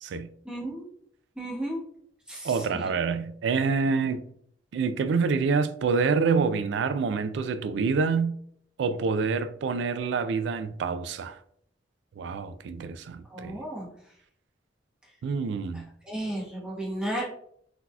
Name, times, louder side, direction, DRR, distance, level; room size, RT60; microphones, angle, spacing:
voice 1, 0.4-0.8 1.4-1.8 2.3-2.9 13.3-13.9 16.0-17.2, right 1 dB, 5° right, 1.1 m, -33 dB
voice 2, 2.4-4.2 4.7-8.3 8.8-11.4 12.2-13.6 15.2-15.8, right 5 dB, 70° right, 0.3 m, -27 dB
3.9 x 2.8 x 2.3 m
head